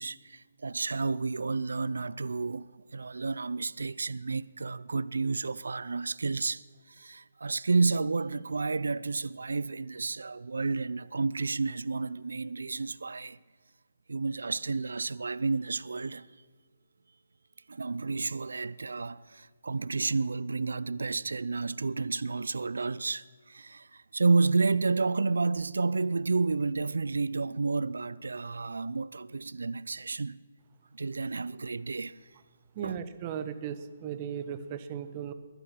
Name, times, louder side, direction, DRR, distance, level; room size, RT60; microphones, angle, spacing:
voice 1, 0.0-13.4 14.1-16.3 17.7-30.4 30.9-32.2 32.8-33.0, right 3 dB, 75° right, 0.5 m, -31 dB
voice 2, 32.7-35.3, right 8 dB, 30° right, 1.1 m, -36 dB
20.5 x 11.5 x 6.0 m
figure-of-eight pair, 140°, 0 cm